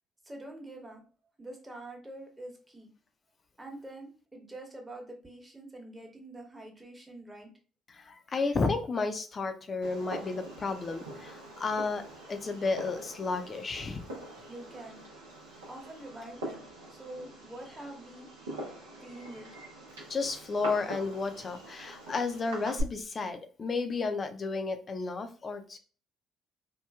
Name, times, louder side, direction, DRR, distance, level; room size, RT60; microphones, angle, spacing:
voice 1, 0.2-1.1 1.4-2.9 3.6-7.5 14.5-15.0 15.7-18.3 19.0-19.5, right 1 dB, 20° right, 2 dB, 1.0 m, -45 dB
voice 2, 7.9-14.0 20.1-25.8, left 4 dB, 40° left, 7 dB, 0.5 m, -32 dB
Fireworks, 9.8-22.8, right 1 dB, 85° right, 0.7 m, -43 dB
3.0 x 2.2 x 2.3 m, 0.38 s
hypercardioid pair, 50°, 0 cm